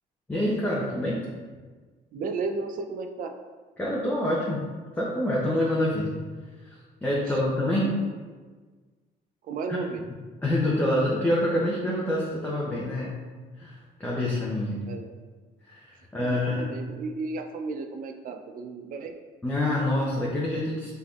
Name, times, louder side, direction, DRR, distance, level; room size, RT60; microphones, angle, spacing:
voice 1, 0.3-1.2 3.8-4.6 5.0-6.2 6.6-7.9 9.7-9.8 10.4-13.2 13.6-14.8 15.7-16.7 19.4-20.9, left 1 dB, 10° left, -5 dB, 0.7 m, -26 dB
voice 2, 2.1-3.3 7.8-8.1 9.4-10.0 14.9-15.1 16.2-19.1, right 4 dB, 55° right, 5 dB, 0.5 m, -34 dB
5.7 x 3.5 x 2.4 m, 1.4 s
cardioid pair, 110°, 17 cm